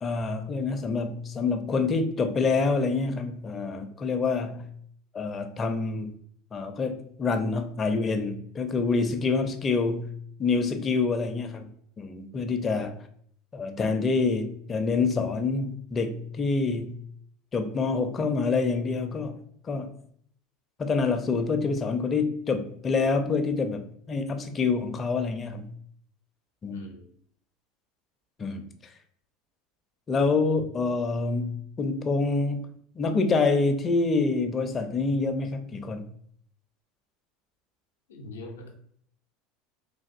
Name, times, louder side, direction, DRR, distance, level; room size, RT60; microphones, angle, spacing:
voice 1, 0.0-4.7 5.1-6.1 6.5-10.1 10.4-11.7 12.0-12.9 13.5-17.0 17.5-20.0 20.8-25.7 26.6-26.8 28.4-28.7 30.1-32.7 33.0-36.0, left 4 dB, 30° left, 0.4 m, -27 dB
voice 2, 26.7-27.0 38.1-38.8, left 2 dB, 85° left, 0.5 m, -42 dB
3.4 x 2.5 x 2.4 m
hypercardioid pair, 90°, 0 cm